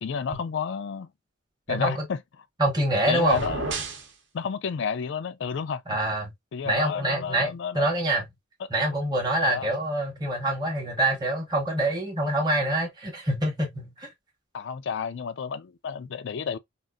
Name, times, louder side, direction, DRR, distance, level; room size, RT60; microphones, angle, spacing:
voice 1, 0.0-1.1 1.7-2.2 3.1-3.7 4.3-5.8 6.5-7.9 9.4-9.7 14.5-16.6, left 6 dB, 55° left, 0.3 m, -31 dB
voice 2, 1.7-2.0 2.6-3.4 5.9-6.3 6.6-8.3 8.7-14.1, right 1 dB, 20° right, 0.9 m, -26 dB
sound 1, 3.2-4.1, right 3 dB, 55° right, 0.8 m, -32 dB
3.7 x 2.5 x 2.3 m
head